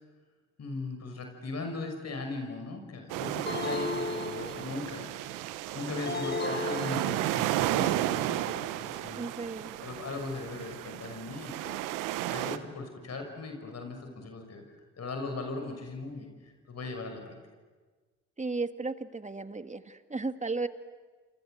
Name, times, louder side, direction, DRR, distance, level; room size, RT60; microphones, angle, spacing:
voice 1, 0.6-5.4 5.7-9.3 9.8-11.8 12.3-14.6 15.0-17.4, left 3 dB, 55° left, 4 dB, 6.2 m, -39 dB
sound 1, 3.1-12.6, right 14 dB, 85° right, 1.1 m, -33 dB
sound 2, 3.5-5.0 6.1-7.6, left 3 dB, 35° left, 1.0 m, -35 dB
voice 2, 9.2-9.7 18.4-20.7, right 3 dB, 25° right, 9 dB, 1.9 m, -34 dB
29.5 x 25.5 x 7.9 m, 1.4 s
hypercardioid pair, 45°, 31 cm